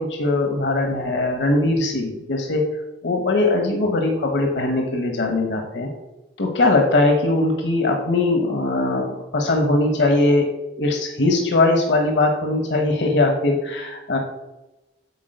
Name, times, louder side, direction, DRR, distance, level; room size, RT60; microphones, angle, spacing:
voice 1, 0.0-2.6 3.0-5.9 6.4-10.5 10.7-14.2, left 2 dB, 75° left, 3 dB, 1.0 m, -20 dB
8.4 x 4.3 x 6.5 m, 1.0 s
head